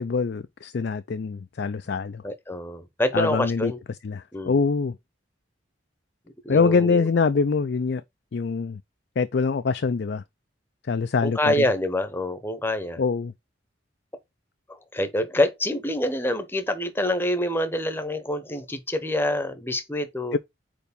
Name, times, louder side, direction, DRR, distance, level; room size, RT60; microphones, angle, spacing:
voice 1, 0.0-2.2 3.1-3.7 4.0-4.9 6.5-8.0 8.3-8.8 9.2-10.2 10.9-11.6 13.0-13.3 20.3-20.4, left 4 dB, 55° left, 0.4 m, -24 dB
voice 2, 2.2-3.8 4.3-4.6 6.4-7.1 11.2-13.0 14.7-20.4, left 1 dB, 10° left, 0.8 m, -26 dB
4.8 x 4.5 x 5.1 m
head